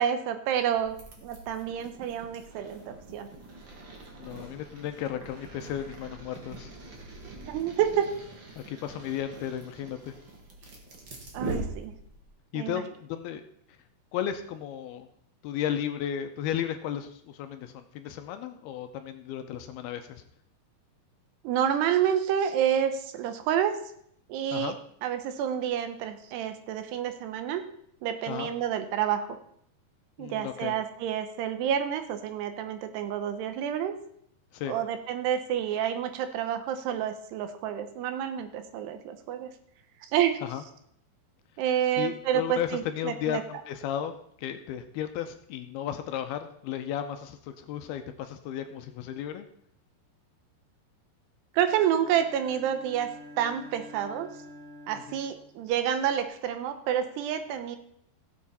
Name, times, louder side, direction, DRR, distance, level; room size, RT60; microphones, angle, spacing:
voice 1, 0.0-3.3 7.5-8.1 11.3-11.9 12.5-12.8 21.4-23.8 24.3-24.7 25.0-27.6 28.0-29.4 30.2-33.9 34.7-39.5 40.0-40.4 41.6-43.4 51.5-53.1 53.4-54.3 54.9-57.8, right 9 dB, 80° right, 9 dB, 3.0 m, -29 dB
sound 1, 0.7-12.3, right 2 dB, 45° right, 1.5 m, -42 dB
voice 2, 4.2-6.7 8.6-10.1 12.5-13.4 14.1-15.1 15.4-20.2 24.5-24.8 28.3-28.5 30.2-30.7 34.5-34.8 40.4-40.6 42.0-44.1 44.4-49.5 55.1-55.2, left 10 dB, 80° left, 8 dB, 2.5 m, -34 dB
Bowed string instrument, 51.6-56.2, left 1 dB, 5° left, 2.6 m, -48 dB
16.5 x 7.3 x 4.2 m, 0.68 s
omnidirectional pair, 4.8 m